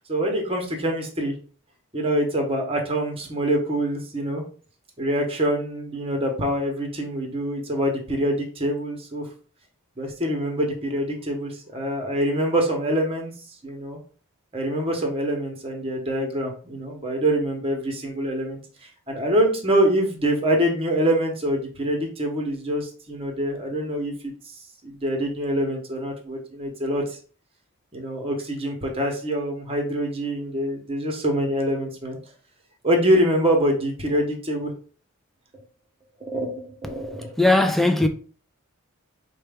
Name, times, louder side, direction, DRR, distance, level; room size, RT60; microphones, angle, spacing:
voice 1, 0.1-1.3 1.9-4.4 5.0-9.3 10.0-13.3 13.6-14.0 14.5-18.6 19.1-24.1 24.4-24.5 24.8-27.2 27.9-32.2 32.8-34.7 36.2-37.3, right 1 dB, 25° right, 0.9 m, -25 dB
voice 2, 37.4-38.1, left 2 dB, ahead, 0.3 m, -18 dB
4.4 x 2.2 x 3.4 m
head